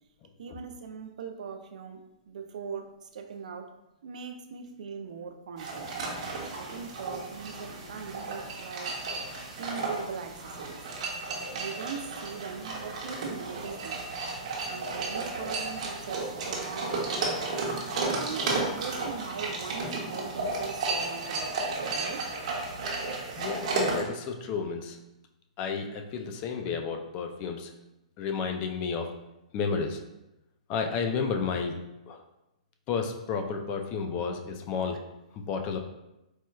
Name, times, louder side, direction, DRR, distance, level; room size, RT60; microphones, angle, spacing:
voice 1, 0.4-3.7 4.0-5.9 6.5-8.9 9.6-10.8 11.5-14.1 14.7-17.5 18.0-22.3, right 6 dB, 75° right, 6 dB, 0.3 m, -40 dB
sound 1, 5.6-24.0, right 3 dB, 60° right, 0.8 m, -33 dB
voice 2, 23.4-25.0 25.6-27.7 28.2-29.1 29.5-30.0 30.7-31.8 32.1-32.2 32.9-35.0 35.3-35.8, left 5 dB, 30° left, 5 dB, 0.3 m, -31 dB
4.3 x 2.2 x 2.2 m, 0.93 s
hypercardioid pair, 145°, 4 cm